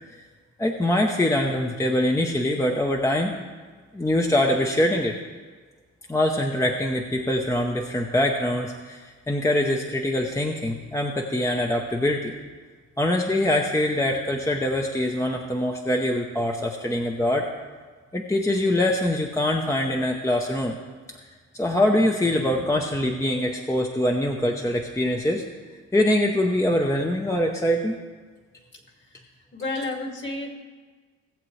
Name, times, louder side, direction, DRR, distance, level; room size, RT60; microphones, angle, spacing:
voice 1, 0.6-3.4 3.9-5.2 6.1-12.3 13.0-17.5 18.1-20.8 21.5-25.4 25.9-27.9, left 1 dB, 10° left, 2 dB, 0.8 m, -23 dB
voice 2, 29.5-30.6, left 2 dB, 40° left, 1 dB, 2.3 m, -30 dB
18.0 x 7.5 x 3.3 m, 1.5 s
cardioid pair, 90°, 30 cm